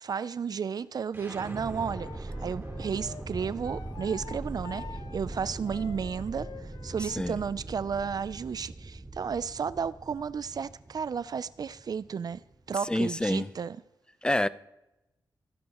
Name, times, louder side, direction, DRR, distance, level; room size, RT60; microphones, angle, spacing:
voice 1, 0.0-12.4 12.7-13.8, right 6 dB, 55° right, 0.4 m, -33 dB
sound 1, 1.1-13.0, right 2 dB, 30° right, 4.9 m, -41 dB
Wind instrument woodwind instrument, 1.9-7.4, left 6 dB, 65° left, 0.9 m, -47 dB
voice 2, 12.9-13.5 14.2-14.5, left 1 dB, 10° left, 0.6 m, -27 dB
26.5 x 10.5 x 3.0 m
cardioid pair, 55°, 8 cm